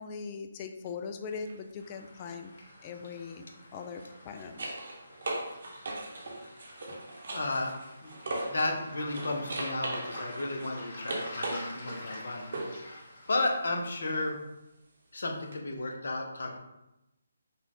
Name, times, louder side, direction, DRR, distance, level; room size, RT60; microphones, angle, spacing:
voice 1, 0.0-2.5 2.8-4.7, left 5 dB, 25° left, 6 dB, 0.4 m, -40 dB
sound 1, 1.3-1.6 3.9-8.8 9.1-12.9 15.5-15.6, right 2 dB, 55° right, 1.0 m, -38 dB
Waves surf, 1.8-13.8, left 1 dB, 45° left, 1.3 m, -48 dB
voice 2, 7.3-7.7 8.0-8.2 8.5-12.9 13.3-14.4 15.1-16.6, left 2 dB, 60° left, 2 dB, 0.8 m, -33 dB
5.5 x 2.4 x 3.6 m, 0.91 s
figure-of-eight pair, 145°, 0 cm